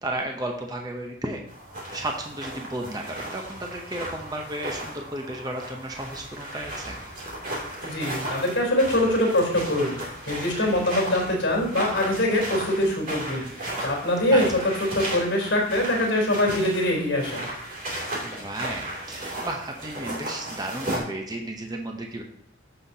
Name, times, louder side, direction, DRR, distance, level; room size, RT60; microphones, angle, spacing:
voice 1, 0.0-1.4 1.9-7.0 14.3-14.4 18.2-22.2, right 1 dB, 20° right, 2 dB, 0.7 m, -33 dB
sound 1, 1.5-21.0, right 1 dB, 40° right, 2.6 m, -35 dB
voice 2, 7.8-14.5 14.9-17.5, left 1 dB, 55° left, 0 dB, 3.5 m, -24 dB
14.0 x 5.8 x 2.7 m, 0.69 s
head